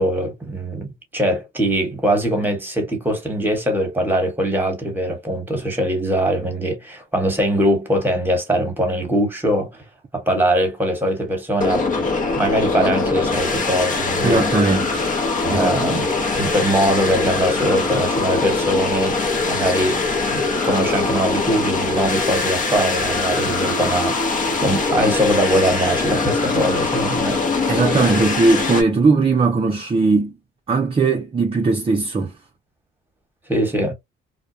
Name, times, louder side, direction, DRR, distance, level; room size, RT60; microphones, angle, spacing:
voice 1, 0.0-9.7 10.1-11.8 12.4-14.4 15.4-16.0 16.3-19.2 19.5-20.0 20.3-27.4 33.5-33.9, equal, 10° right, 1.1 m, -21 dB
sound 1, 11.6-28.8, left 3 dB, 40° left, 0.8 m, -22 dB
voice 2, 14.2-15.0 15.5-16.0 27.7-30.3 30.7-32.3, right 3 dB, 30° right, 0.6 m, -19 dB
2.2 x 2.2 x 2.6 m
cardioid pair, 90°, 20 cm